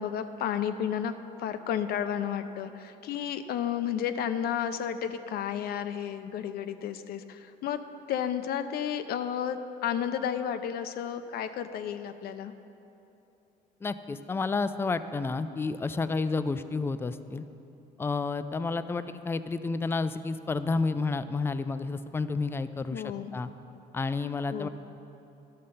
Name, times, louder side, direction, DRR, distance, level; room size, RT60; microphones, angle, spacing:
voice 1, 0.0-7.8 8.1-12.5 22.9-23.3 24.5-24.7, left 9 dB, 65° left, 10 dB, 0.6 m, -32 dB
voice 2, 13.8-17.4 18.0-23.5 23.9-24.7, left 3 dB, 15° left, 11 dB, 0.3 m, -30 dB
12.0 x 6.4 x 5.6 m, 3.0 s
cardioid pair, 110°, 17 cm